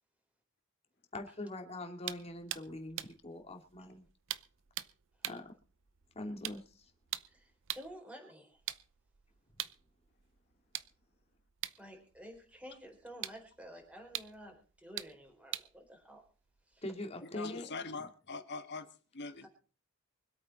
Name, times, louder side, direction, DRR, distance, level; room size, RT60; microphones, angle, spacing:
voice 1, 1.1-4.0 5.3-5.4 6.1-6.9 16.8-17.7 18.0-18.1, left 1 dB, 30° left, 3 dB, 2.5 m, -43 dB
sound 1, 2.0-8.0 8.5-17.0, right 12 dB, 60° right, 0.7 m, -45 dB
voice 2, 7.3-8.6 11.8-16.2 16.7-16.8 19.4-19.5, equal, 5° right, 1 dB, 4.2 m, -51 dB
voice 3, 17.3-18.9 19.1-19.5, left 4 dB, 50° left, 9 dB, 1.6 m, -42 dB
25.0 x 8.6 x 4.2 m, 0.38 s
head